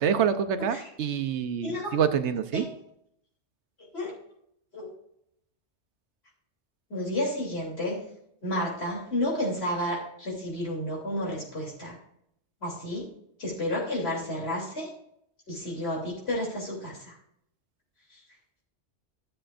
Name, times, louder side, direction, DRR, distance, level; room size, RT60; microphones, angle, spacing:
voice 1, 0.0-2.6, right 7 dB, 85° right, 9 dB, 1.0 m, -26 dB
voice 2, 1.6-2.0 2.5-2.7 3.9-4.1 4.7-4.9 6.9-8.1 8.4-12.0 12.6-13.1 13.4-14.9 15.5-17.2, left 1 dB, 70° left, -3 dB, 3.4 m, -31 dB
13.5 x 7.6 x 2.5 m, 0.73 s
omnidirectional pair, 1.1 m